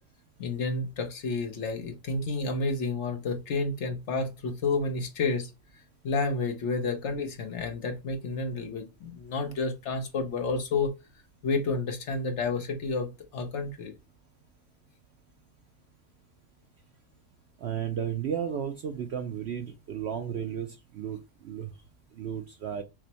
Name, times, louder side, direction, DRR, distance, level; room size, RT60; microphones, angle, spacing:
voice 1, 0.4-5.5 6.0-10.9 11.4-13.9, left 3 dB, 60° left, 1.0 m, -30 dB
voice 2, 17.6-21.7 22.2-22.8, right 8 dB, 65° right, 0.7 m, -33 dB
6.0 x 2.1 x 2.9 m
omnidirectional pair, 1.5 m